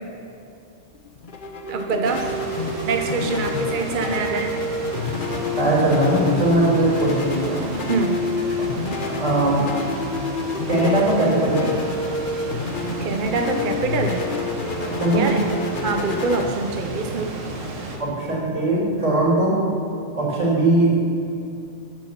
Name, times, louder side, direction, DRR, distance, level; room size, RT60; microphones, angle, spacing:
sound 1, 0.9-19.2, left 3 dB, 45° left, 1.2 m, -28 dB
voice 1, 1.7-2.3 2.9-4.6 7.9-8.2 13.0-14.2 15.1-15.4 15.8-17.3, right 4 dB, 45° right, 4 dB, 0.9 m, -25 dB
sound 2, 2.0-18.0, right 2 dB, 90° right, 1.9 m, -33 dB
voice 2, 5.6-7.6 9.1-9.7 10.7-11.8 15.0-15.3 18.0-19.6 20.1-21.0, right 1 dB, 70° right, -4 dB, 3.7 m, -20 dB
14.5 x 9.1 x 5.9 m, 2.6 s
omnidirectional pair, 1.3 m